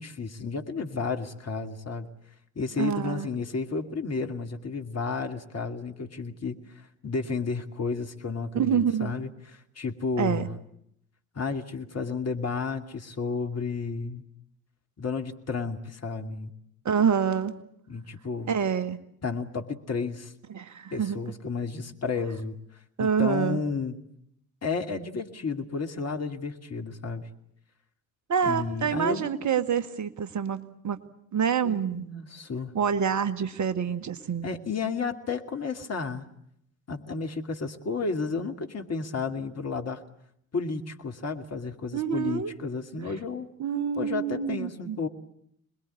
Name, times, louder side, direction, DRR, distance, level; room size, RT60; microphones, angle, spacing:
voice 1, 0.0-2.1 2.6-10.5 11.3-14.2 15.0-16.5 17.9-18.5 19.2-20.3 20.9-22.6 23.0-24.0 24.6-27.3 28.4-29.3 31.6-32.8 34.4-36.2 36.9-40.0 40.5-43.5 44.0-45.1, left 4 dB, 35° left, 4 dB, 2.7 m, -32 dB
voice 2, 2.8-3.3 8.5-9.1 10.2-10.5 16.9-17.5 18.5-19.0 20.5-21.2 23.0-23.6 28.3-31.0 31.3-32.0 32.7-34.5 41.9-42.5 43.6-45.0, right 7 dB, 40° right, 10 dB, 2.1 m, -27 dB
27.0 x 21.0 x 8.5 m, 0.72 s
figure-of-eight pair, 50°, 43 cm